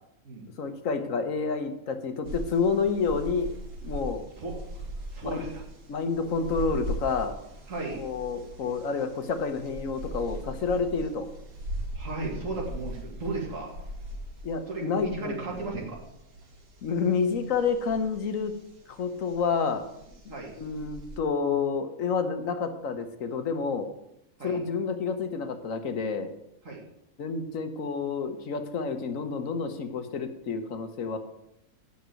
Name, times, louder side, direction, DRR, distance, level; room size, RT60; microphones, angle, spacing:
voice 1, 0.6-3.5 3.8-4.2 5.2-5.5 5.9-7.3 7.9-11.3 14.4-15.3 16.8-18.5 18.9-19.8 20.2-23.9 24.4-26.3 27.2-31.2, left 5 dB, 70° left, 8 dB, 1.3 m, -29 dB
sound 1, 2.2-21.2, equal, 80° right, 2.0 m, -40 dB
voice 2, 5.1-5.6 7.7-8.1 11.9-13.7 14.7-16.0 20.3-20.6 24.4-24.6 26.6-26.8, right 3 dB, 65° right, -1 dB, 2.4 m, -35 dB
8.5 x 6.3 x 7.7 m, 0.83 s
omnidirectional pair, 1.5 m